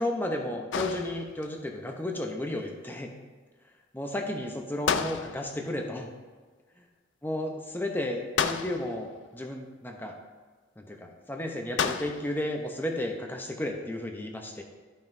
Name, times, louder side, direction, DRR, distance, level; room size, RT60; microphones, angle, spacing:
voice 1, 0.0-3.1 3.9-6.1 7.2-10.2 10.8-14.6, left 1 dB, 10° left, 3 dB, 0.7 m, -33 dB
sound 1, 0.7-1.6 4.9-5.7 8.4-9.1 11.8-12.4, left 6 dB, 70° left, 0.4 m, -31 dB
12.5 x 5.5 x 2.7 m, 1.4 s
head